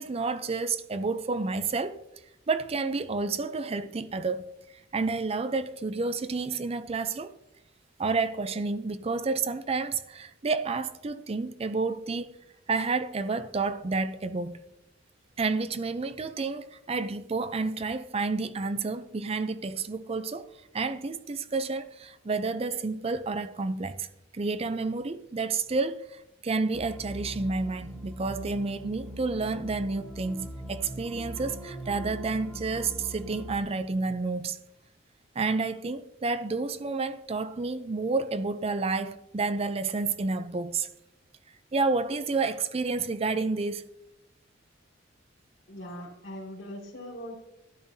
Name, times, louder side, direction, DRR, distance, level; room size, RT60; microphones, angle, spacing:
voice 1, 0.0-2.0 2.5-4.5 4.9-7.4 8.0-12.3 12.7-14.6 15.4-20.5 20.7-24.1 24.3-34.6 35.4-40.9 41.7-43.8, right 3 dB, 30° right, 0.5 m, -30 dB
sound 1, 26.7-33.6, right 1 dB, ahead, 1.4 m, -41 dB
voice 2, 45.7-47.4, equal, 65° left, 2.4 m, -40 dB
12.0 x 12.0 x 2.7 m
head